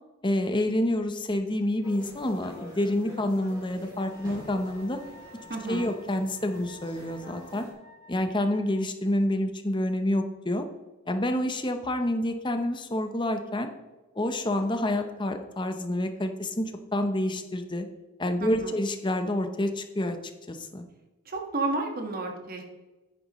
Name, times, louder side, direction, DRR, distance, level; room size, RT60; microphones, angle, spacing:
voice 1, 0.2-5.0 5.7-7.7 8.1-10.6 11.1-13.7 14.2-17.9 18.2-20.2 20.5-20.8, left 1 dB, 20° left, 7 dB, 0.8 m, -28 dB
sound 1, 1.8-7.7, left 1 dB, 15° right, 2.6 m, -47 dB
Wind instrument woodwind instrument, 3.9-8.9, left 3 dB, 75° right, 1.1 m, -52 dB
voice 2, 5.5-5.9 18.4-18.8 21.2-22.6, right 3 dB, 40° right, 3 dB, 1.5 m, -32 dB
10.5 x 9.1 x 3.1 m, 1.1 s
head